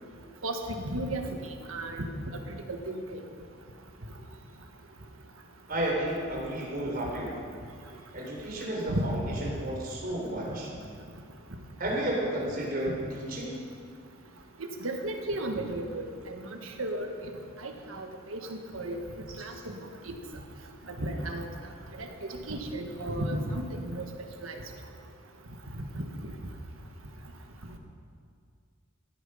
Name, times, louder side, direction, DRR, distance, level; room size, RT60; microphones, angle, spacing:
voice 1, 0.4-1.2 1.7-2.0 2.7-3.2 8.9-9.1 14.6-17.1 17.6-19.0 19.4-19.7 20.1-20.2 20.9-21.5 22.0-24.1 24.4-24.5, right 1 dB, 90° right, 4 dB, 1.6 m, -34 dB
voice 2, 5.7-7.3 8.1-10.7 11.8-13.6, right 1 dB, 45° right, -3 dB, 4.0 m, -32 dB
15.5 x 10.5 x 5.7 m, 2.2 s
head